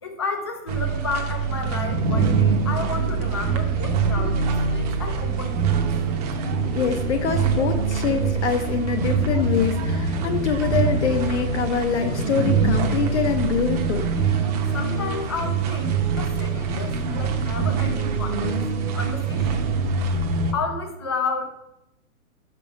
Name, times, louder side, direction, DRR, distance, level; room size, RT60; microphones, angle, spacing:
voice 1, 0.0-5.8 14.7-18.7 18.9-19.6 20.5-21.5, left 4 dB, 20° left, 5 dB, 0.4 m, -31 dB
sound 1, 0.7-20.5, right 5 dB, 25° right, 0.8 m, -24 dB
voice 2, 6.6-14.1, left 7 dB, 50° left, 5 dB, 0.8 m, -24 dB
6.0 x 5.4 x 5.3 m, 0.86 s
hypercardioid pair, 155°, 43 cm